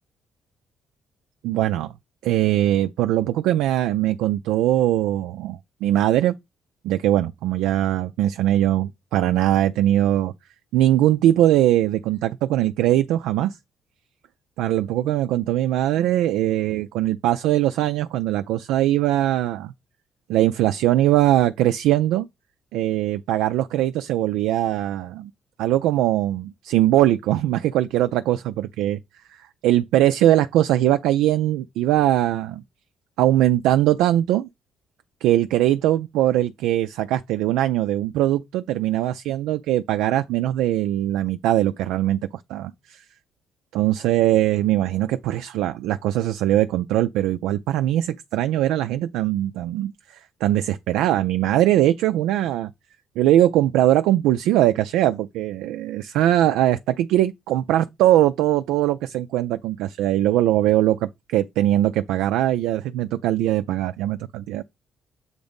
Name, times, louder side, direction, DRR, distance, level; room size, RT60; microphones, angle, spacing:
voice 1, 1.4-1.9 2.2-6.3 6.8-10.3 10.7-13.6 14.6-19.7 20.3-22.3 22.7-25.3 25.6-28.4 28.8-29.0 29.3-32.6 33.2-34.5 35.2-42.2 42.5-43.0 43.7-52.7 53.2-64.6, right 13 dB, 90° right, 0.3 m, -21 dB
7.8 x 2.7 x 5.1 m
cardioid pair, 80°, 0 cm